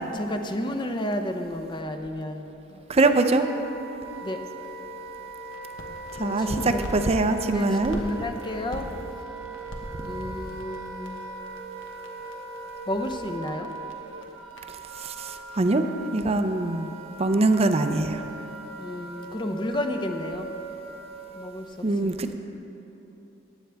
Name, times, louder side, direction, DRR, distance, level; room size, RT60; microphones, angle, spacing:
voice 1, 0.1-2.8 4.2-4.4 6.2-6.8 7.5-8.9 10.0-11.2 12.9-13.7 18.8-20.5 21.3-22.2, left 1 dB, 25° left, 6 dB, 0.6 m, -31 dB
Wind instrument woodwind instrument, 2.8-21.7, right 3 dB, 90° right, 1.1 m, -40 dB
voice 2, 2.9-3.5 6.2-6.5 6.9-8.0 15.0-15.3 15.6-15.8 16.1-16.9 17.2-18.2 21.8-22.3, right 2 dB, 30° right, 8 dB, 0.5 m, -22 dB
sound 1, 5.5-7.1 7.6-15.7, equal, 70° left, 1.2 m, -44 dB
15.5 x 10.0 x 3.4 m, 3.0 s
head